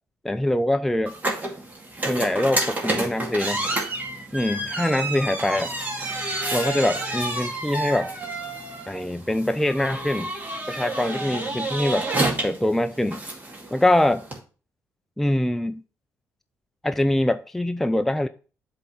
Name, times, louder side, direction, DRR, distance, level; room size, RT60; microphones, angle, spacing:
voice 1, 0.2-1.2 2.0-3.7 4.3-5.7 6.5-8.1 8.9-10.3 10.7-12.1 12.4-13.2 13.7-14.2 15.2-15.8 16.8-18.3, left 1 dB, 5° left, 8 dB, 0.5 m, -23 dB
sound 1, 1.1-14.4, right 2 dB, 25° right, 2.3 m, -29 dB
7.6 x 3.6 x 5.9 m, 0.37 s
cardioid pair, 80°, 6 cm